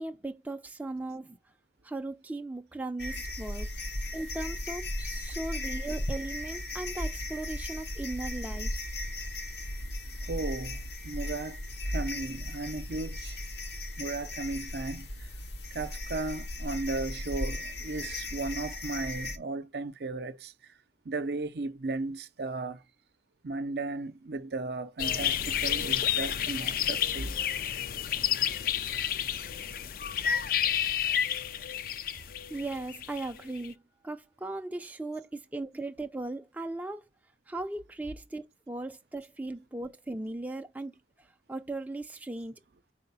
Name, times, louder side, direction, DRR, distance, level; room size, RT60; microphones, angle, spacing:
voice 1, 0.0-1.4 1.8-3.7 4.1-8.8 32.5-37.0 37.5-40.9 41.2-42.6, right 2 dB, 10° right, 0.4 m, -38 dB
sound 1, 3.0-19.4, left 1 dB, 70° left, 0.9 m, -36 dB
voice 2, 10.2-11.6 11.8-13.4 14.0-15.4 15.7-20.7 21.0-22.8 23.4-27.4, right 3 dB, 65° right, 0.6 m, -35 dB
sound 2, 25.0-33.7, left 9 dB, 55° left, 0.4 m, -30 dB
4.9 x 4.7 x 5.4 m
head